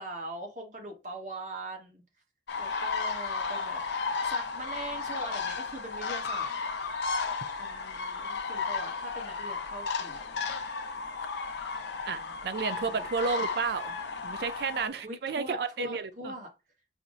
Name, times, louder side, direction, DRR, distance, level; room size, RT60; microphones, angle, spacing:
voice 1, 0.0-2.0 2.6-3.8 4.2-6.5 7.6-10.2 12.1-12.4 12.8-13.1 14.3-14.5 14.9-16.5, right 1 dB, 45° right, 1.1 m, -42 dB
sound 1, 2.5-14.9, left 4 dB, 85° left, 0.5 m, -34 dB
voice 2, 12.1-14.0 14.2-16.3, right 5 dB, 65° right, 0.4 m, -32 dB
5.6 x 2.0 x 2.4 m
head